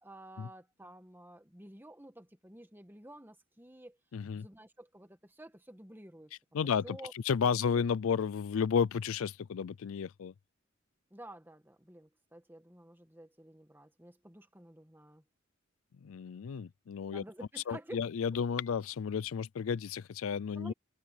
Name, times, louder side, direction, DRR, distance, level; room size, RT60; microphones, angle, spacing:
voice 1, 0.0-4.0 4.3-7.1 7.4-7.6 11.1-15.2 17.1-18.0 20.5-20.7, right 1 dB, 10° right, 1.9 m, -51 dB
voice 2, 4.1-4.5 6.5-7.0 7.3-10.3 16.0-17.2 17.7-20.7, left 6 dB, 80° left, 0.4 m, -32 dB
head